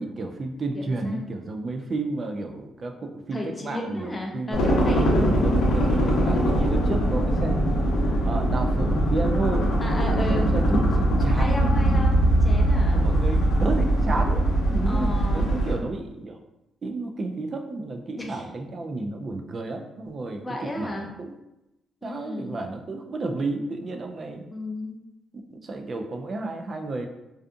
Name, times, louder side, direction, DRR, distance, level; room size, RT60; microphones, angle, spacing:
voice 1, 0.0-7.7 8.2-9.7 10.3-11.8 12.9-16.4 16.8-21.3 22.0-24.5 25.5-27.1, right 2 dB, 40° right, 4 dB, 0.3 m, -32 dB
voice 2, 0.7-1.3 3.3-5.4 9.8-10.5 11.3-13.0 14.8-15.6 18.2-18.4 20.4-21.1 22.0-22.6 24.5-25.0, left 1 dB, 15° left, 0 dB, 0.5 m, -34 dB
sound 1, 4.5-15.8, right 1 dB, 85° left, 0.7 m, -21 dB
2.5 x 2.4 x 2.4 m, 0.93 s
cardioid pair, 90°, 0 cm